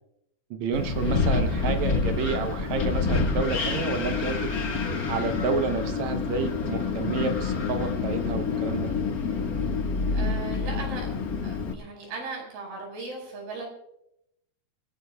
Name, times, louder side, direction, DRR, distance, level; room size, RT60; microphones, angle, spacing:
voice 1, 0.5-4.5 5.1-8.9, right 5 dB, 70° right, 6 dB, 1.8 m, -30 dB
Wind, 0.7-11.7, left 4 dB, 60° left, 0.9 m, -27 dB
voice 2, 10.1-11.1 11.4-13.7, right 3 dB, 85° right, 0 dB, 7.3 m, -37 dB
29.0 x 16.5 x 2.3 m, 0.79 s
omnidirectional pair, 4.4 m